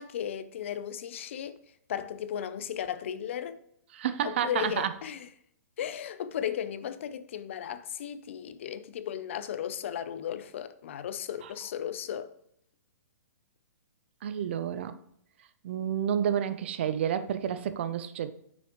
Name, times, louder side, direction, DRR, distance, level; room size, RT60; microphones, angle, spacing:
voice 1, 0.0-1.6 1.9-3.6 4.2-5.3 5.8-12.3, left 9 dB, 45° left, 0.5 m, -35 dB
voice 2, 3.9-4.9 14.2-14.9 15.6-18.3, right 9 dB, 40° right, 0.5 m, -30 dB
7.0 x 6.2 x 3.0 m
hypercardioid pair, 170°, 10 cm